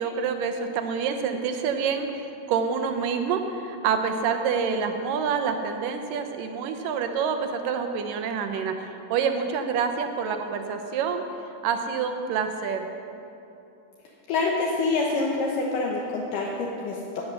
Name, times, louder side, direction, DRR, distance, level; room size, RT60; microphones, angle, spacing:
voice 1, 0.0-11.2 11.6-12.9, right 6 dB, 75° right, 6 dB, 2.5 m, -27 dB
voice 2, 14.3-17.2, left 3 dB, 70° left, -2 dB, 2.6 m, -26 dB
16.0 x 8.7 x 6.3 m, 2.8 s
omnidirectional pair, 4.0 m